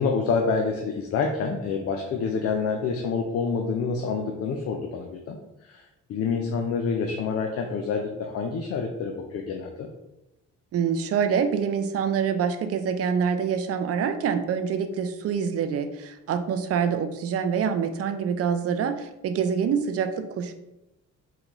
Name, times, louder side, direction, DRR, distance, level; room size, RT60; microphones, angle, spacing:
voice 1, 0.0-5.4 5.7-5.8 6.1-9.9, left 5 dB, 55° left, 3 dB, 0.4 m, -27 dB
voice 2, 10.7-20.5, right 7 dB, 50° right, 8 dB, 0.4 m, -26 dB
4.0 x 2.2 x 3.0 m, 0.95 s
cardioid pair, 90°, 30 cm